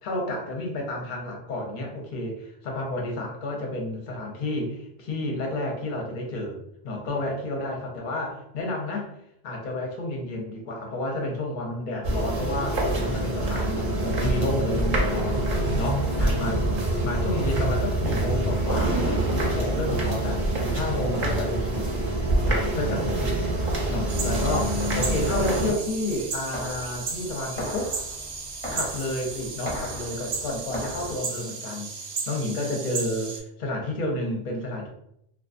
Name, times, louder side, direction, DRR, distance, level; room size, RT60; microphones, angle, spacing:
voice 1, 0.0-9.1 9.4-15.5 15.7-16.6 17.0-21.9 22.4-23.5 23.9-28.0 28.7-31.9 32.3-34.9, left 1 dB, 50° left, 1 dB, 0.7 m, -30 dB
sound 1, 12.0-25.7, right 1 dB, 55° right, 0.7 m, -25 dB
sound 2, 24.1-33.4, right 4 dB, 80° right, 0.9 m, -35 dB
sound 3, 24.5-31.2, left 1 dB, 10° left, 0.8 m, -38 dB
2.3 x 2.3 x 2.4 m, 0.76 s
omnidirectional pair, 1.1 m